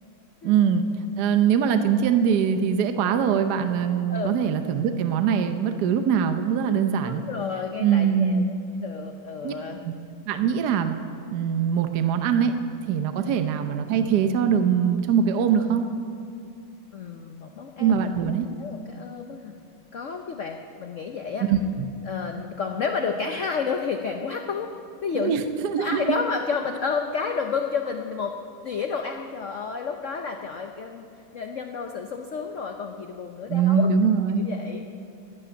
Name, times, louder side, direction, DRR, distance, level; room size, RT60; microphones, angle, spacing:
voice 1, 0.4-0.8 1.2-7.2 7.8-8.5 9.4-9.5 9.8-9.9 10.3-11.0 11.3-12.6 12.9-15.9 17.8-18.4 21.5-21.6 25.1-26.2 33.5-34.4, right 7 dB, 65° right, 8 dB, 1.1 m, -22 dB
voice 2, 4.1-4.4 7.0-8.4 8.8-9.8 13.3-13.4 16.9-18.1 18.6-19.5 19.9-21.4 22.1-24.7 25.0-25.4 25.8-28.3 28.6-31.1 31.3-33.9 34.4-34.9, left 5 dB, 85° left, 4 dB, 0.6 m, -30 dB
11.5 x 8.4 x 9.9 m, 2.5 s
omnidirectional pair, 2.3 m